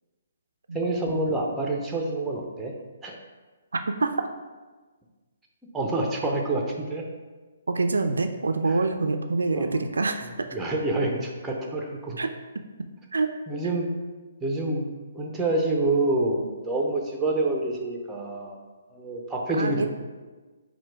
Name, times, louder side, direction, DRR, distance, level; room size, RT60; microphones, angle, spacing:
voice 1, 0.7-2.7 3.0-3.1 5.7-7.0 9.5-9.8 10.5-12.2 13.5-13.9 14.4-14.9 15.1-18.6 18.9-19.9, right 2 dB, 10° right, 0 dB, 0.6 m, -27 dB
voice 2, 3.7-4.3 7.7-10.5 12.2-12.3 13.1-13.3 19.5-19.9, right 3 dB, 90° right, 7 dB, 0.3 m, -26 dB
4.4 x 2.2 x 4.5 m, 1.3 s
hypercardioid pair, 150°, 0 cm